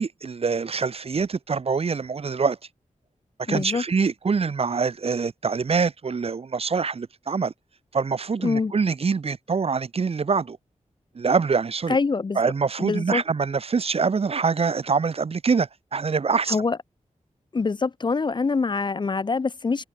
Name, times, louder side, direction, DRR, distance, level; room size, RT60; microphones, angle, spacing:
voice 1, 0.0-2.6 3.5-7.5 7.9-10.6 11.1-12.0 12.4-16.6, right 5 dB, 50° right, 0.8 m, -24 dB
voice 2, 3.5-3.8 8.4-8.7 11.9-12.4 12.8-13.2 16.5-16.8 17.5-19.8, left 4 dB, 35° left, 0.5 m, -24 dB
wide cardioid pair, 130°, 13 cm